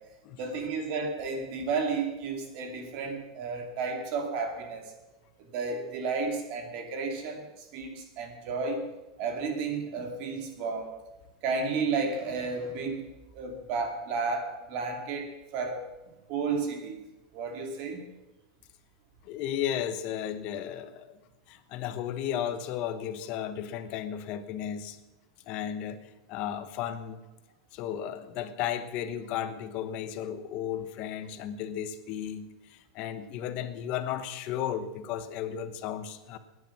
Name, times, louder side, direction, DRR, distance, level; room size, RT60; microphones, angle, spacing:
voice 1, 0.4-4.8 5.5-8.9 9.2-10.9 11.4-13.1 13.3-15.8 16.3-17.0 17.3-18.1, right 4 dB, 45° right, 4 dB, 2.6 m, -32 dB
voice 2, 19.2-21.2 21.5-25.0 25.5-26.0 26.3-27.2 27.7-36.4, left 10 dB, 40° left, 11 dB, 1.1 m, -34 dB
20.0 x 9.8 x 6.1 m, 1.0 s
supercardioid pair, 165°, 3 cm